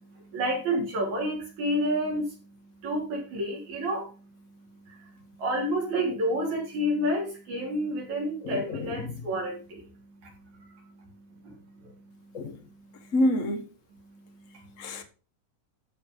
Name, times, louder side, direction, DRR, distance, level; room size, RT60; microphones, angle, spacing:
voice 1, 0.3-2.4 2.8-4.1 4.9-5.1 5.4-9.8 10.6-10.7 11.0-11.1 11.4-11.5 11.8-11.9, equal, 60° right, 4.7 m, -29 dB
voice 2, 8.4-9.1 12.3-12.6 13.1-13.6 14.8-15.0, left 1 dB, 55° left, 0.8 m, -27 dB
14.0 x 5.1 x 5.3 m
omnidirectional pair, 3.8 m